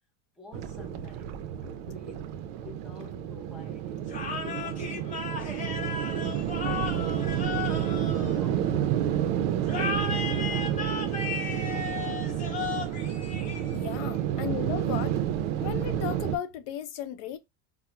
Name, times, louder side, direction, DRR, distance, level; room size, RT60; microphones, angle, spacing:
voice 1, 0.4-2.3 2.6-5.7 6.5-7.4 7.8-9.3 9.7-12.4 14.0-14.1, left 3 dB, ahead, 0.4 m, -49 dB
sound 1, 0.5-16.4, right 10 dB, 65° right, 0.5 m, -30 dB
sound 2, 4.1-8.9 9.6-14.1, left 5 dB, 20° left, 0.9 m, -35 dB
voice 2, 13.7-15.2 15.6-17.4, left 10 dB, 65° left, 0.6 m, -35 dB
4.3 x 2.0 x 2.3 m
cardioid pair, 155°, 38 cm